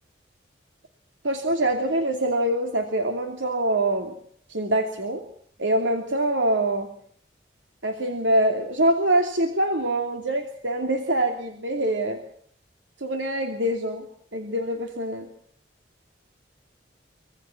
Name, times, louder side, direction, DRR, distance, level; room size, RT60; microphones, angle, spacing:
voice 1, 1.2-4.1 4.5-5.2 5.6-6.9 7.8-12.2 13.0-14.1 14.3-15.3, right 1 dB, 80° right, 5 dB, 2.7 m, -24 dB
25.5 x 19.0 x 5.9 m, 0.64 s
head